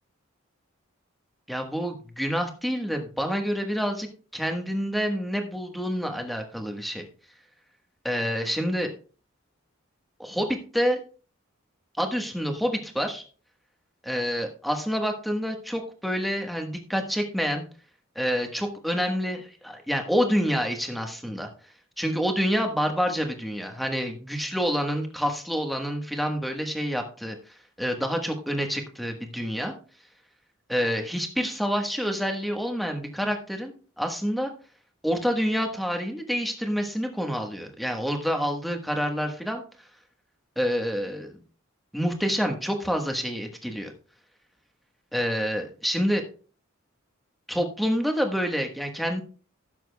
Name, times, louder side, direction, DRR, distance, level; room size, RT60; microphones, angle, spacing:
voice 1, 1.5-4.1 4.3-7.0 8.0-8.9 10.2-11.0 12.0-13.2 14.0-17.6 18.1-21.5 22.0-27.3 27.8-29.7 30.7-34.5 35.0-39.6 40.6-41.4 41.9-43.9 45.1-46.2 47.5-49.2, equal, ahead, 3 dB, 1.3 m, -27 dB
16.0 x 7.5 x 2.3 m, 0.38 s
head